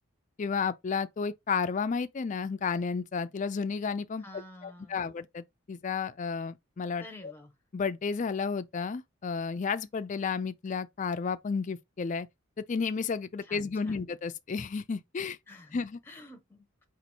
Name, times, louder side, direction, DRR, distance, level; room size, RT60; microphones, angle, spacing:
voice 1, 0.4-4.2 4.6-7.3 7.7-12.3 12.6-15.4 15.7-16.0, left 5 dB, 35° left, 0.4 m, -32 dB
voice 2, 4.2-5.2 7.0-7.5 13.4-14.1 15.5-15.8 16.1-16.8, left 1 dB, 10° left, 0.8 m, -49 dB
4.1 x 2.5 x 4.4 m
head